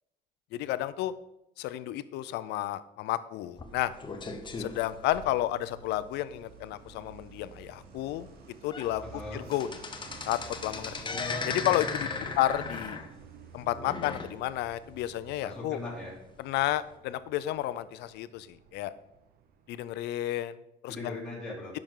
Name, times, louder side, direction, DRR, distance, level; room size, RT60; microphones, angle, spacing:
voice 1, 0.5-1.1 1.6-3.9 4.6-8.3 8.6-9.0 9.3-9.7 10.2-10.9 11.5-12.1 12.4-13.0 13.5-15.8 16.4-18.9 19.7-21.1, left 14 dB, 85° left, 15 dB, 0.5 m, -31 dB
sound 1, 3.6-5.8 6.3-6.4 6.8-6.9 7.4-7.5 8.1-8.2 8.5-8.9 9.2-14.7 15.1-15.2 16.0-16.1, left 4 dB, 30° left, 0.9 m, -37 dB
Truck, 3.7-19.9, right 6 dB, 65° right, 0.8 m, -51 dB
voice 2, 9.0-9.4 11.0-11.6 12.1-12.5 15.4-16.2 20.9-21.8, left 2 dB, 5° left, -7 dB, 3.2 m, -40 dB
10.0 x 6.1 x 3.7 m, 0.86 s
cardioid pair, 110°, 17 cm